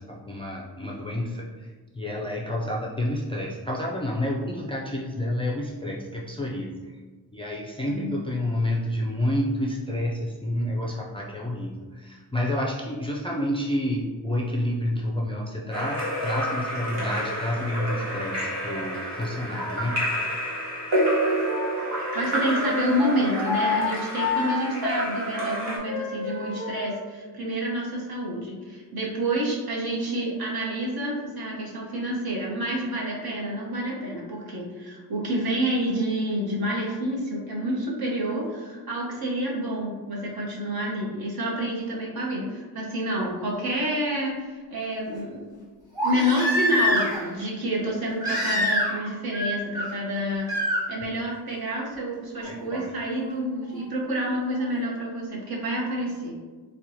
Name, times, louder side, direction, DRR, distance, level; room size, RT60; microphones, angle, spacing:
voice 1, 0.0-1.5 2.0-6.7 7.3-20.2 51.0-51.1 52.4-52.9, left 1 dB, 15° left, -3 dB, 0.3 m, -29 dB
voice 2, 7.9-8.2 22.1-45.5 46.0-50.5 50.9-56.3, equal, 60° right, -3 dB, 1.0 m, -28 dB
Splash splatter / Drip / Trickle dribble, 15.7-25.8, equal, 85° right, 1.2 m, -29 dB
Wind instrument woodwind instrument, 21.4-26.9, left 4 dB, 30° right, 0.8 m, -30 dB
Crying sobbing, 43.2-43.3 46.0-47.3 48.2-49.1 49.3-49.8 50.5-50.8 52.4-52.5, equal, 10° right, 1.3 m, -25 dB
4.4 x 2.3 x 2.7 m, 1.4 s
wide cardioid pair, 115°, 41 cm